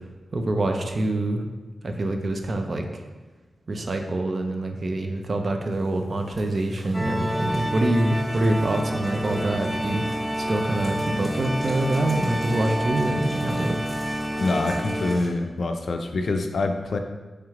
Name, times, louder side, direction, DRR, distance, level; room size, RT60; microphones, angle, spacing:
voice 1, 0.3-1.4 1.8-3.0 3.7-10.1 10.4-13.8 14.3-14.4, right 1 dB, 55° right, 4 dB, 0.5 m, -25 dB
sound 1, 5.7-15.3, right 1 dB, 40° right, 1.1 m, -46 dB
sound 2, 6.9-15.1, equal, 5° left, 0.6 m, -29 dB
voice 2, 14.4-17.0, left 2 dB, 70° left, 5 dB, 0.3 m, -25 dB
3.3 x 3.0 x 3.5 m, 1.2 s
cardioid pair, 45°, 0 cm